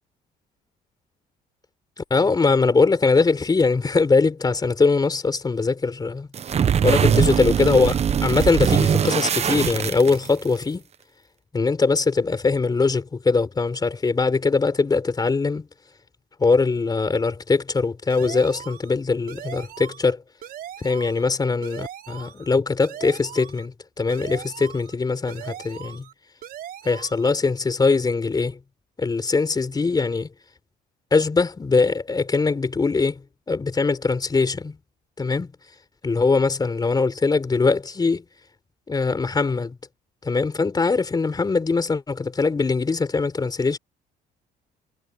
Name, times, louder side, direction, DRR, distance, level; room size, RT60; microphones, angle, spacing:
voice 1, 2.1-6.3 6.8-10.8 11.5-15.7 16.4-20.2 20.8-26.1 26.8-28.6 29.0-30.3 31.1-33.2 33.5-34.8 35.2-35.5 36.0-38.2 38.9-39.8 40.2-43.8, left 4 dB, 25° left, 4.1 m, -21 dB
sound 1, 6.3-10.6, right 8 dB, 40° right, 1.1 m, -21 dB
sound 2, 18.1-18.9 19.3-20.1 20.4-21.3 21.6-22.5 22.8-23.7 24.1-24.9 25.3-26.1 26.4-27.3, right 11 dB, 60° right, 5.8 m, -39 dB
cardioid pair, 110°, 17 cm